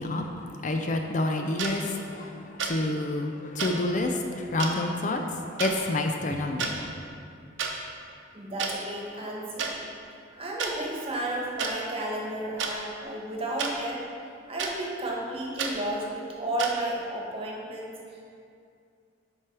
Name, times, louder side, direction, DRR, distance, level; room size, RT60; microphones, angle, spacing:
voice 1, 0.0-6.9, left 2 dB, 40° left, 4 dB, 0.5 m, -29 dB
sound 1, 1.6-1.7 2.6-2.8 3.6-3.7 4.6-4.7 5.6-5.7 6.5-6.7 7.6-7.7 8.6-8.7 9.6-9.7 10.6-10.7 11.6-11.7 12.6-12.7 13.6-13.7 14.6-14.7 15.6-15.7 16.6-16.7, right 5 dB, 75° right, 0.9 m, -30 dB
voice 2, 8.3-9.8 10.4-14.0 14.5-18.2, right 1 dB, 30° right, -2 dB, 1.3 m, -33 dB
7.5 x 4.7 x 5.9 m, 2.4 s
head